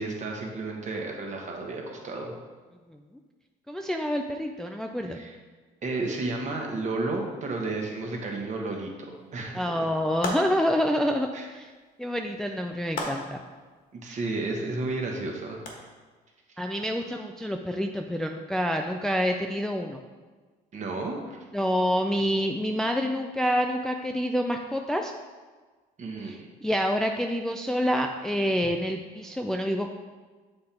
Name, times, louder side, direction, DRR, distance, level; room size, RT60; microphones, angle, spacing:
voice 1, 0.0-2.3 5.1-5.4 5.8-9.9 11.3-11.5 13.9-15.6 16.5-16.6 20.7-21.4 26.0-26.5, right 3 dB, 45° right, 1 dB, 1.3 m, -32 dB
voice 2, 3.7-5.2 9.5-11.7 12.0-13.4 16.6-20.0 21.5-25.1 26.3-29.9, equal, 5° left, 3 dB, 0.3 m, -27 dB
sound 1, 10.2-10.8 12.9-13.5 15.6-15.7, left 2 dB, 60° left, 1.4 m, -33 dB
7.6 x 3.8 x 4.3 m, 1.4 s
cardioid pair, 110°, 17 cm